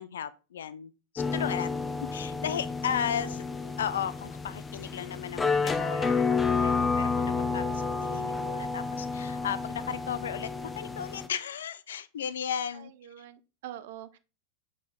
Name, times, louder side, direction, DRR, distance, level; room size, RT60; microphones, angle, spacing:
voice 1, 0.0-1.7 2.1-3.4 3.8-12.9, left 8 dB, 65° left, 0.4 m, -35 dB
sound 1, 1.2-11.3, left 4 dB, 15° left, 0.7 m, -30 dB
voice 2, 3.6-4.1 12.7-14.2, right 12 dB, 55° right, 0.6 m, -46 dB
6.4 x 4.5 x 3.4 m
figure-of-eight pair, 90°, 0 cm